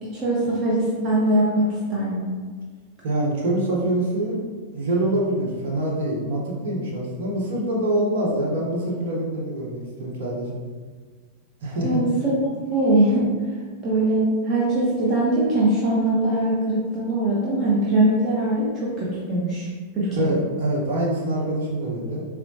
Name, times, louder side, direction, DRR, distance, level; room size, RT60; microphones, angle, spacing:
voice 1, 0.0-2.2 11.8-12.4 12.7-13.3 13.8-19.7 19.9-20.3, right 1 dB, 30° right, -7 dB, 0.8 m, -21 dB
voice 2, 3.0-4.4 4.7-10.6 11.6-12.0 20.1-22.3, right 1 dB, 65° right, -3 dB, 1.0 m, -25 dB
4.3 x 2.1 x 2.7 m, 1.5 s
figure-of-eight pair, 95°, 0 cm